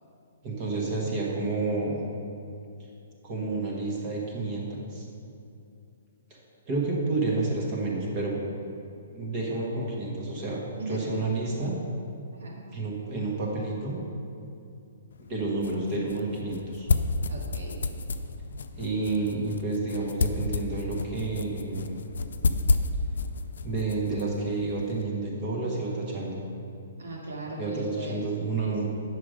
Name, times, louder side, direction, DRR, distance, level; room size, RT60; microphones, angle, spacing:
voice 1, 0.4-2.0 3.2-5.0 6.3-6.4 6.7-8.4 9.1-11.7 12.7-14.0 15.3-16.9 18.8-22.0 23.6-26.4 27.6-28.9, right 3 dB, 20° right, -2 dB, 1.2 m, -30 dB
voice 2, 10.8-11.1 12.3-12.6 17.3-17.8 27.0-28.2 28.6-28.9, right 1 dB, 80° right, -3 dB, 2.3 m, -38 dB
sound 1, 15.1-25.0, left 3 dB, 75° left, 0.5 m, -31 dB
8.7 x 6.3 x 5.0 m, 2.6 s
hypercardioid pair, 175°, 0 cm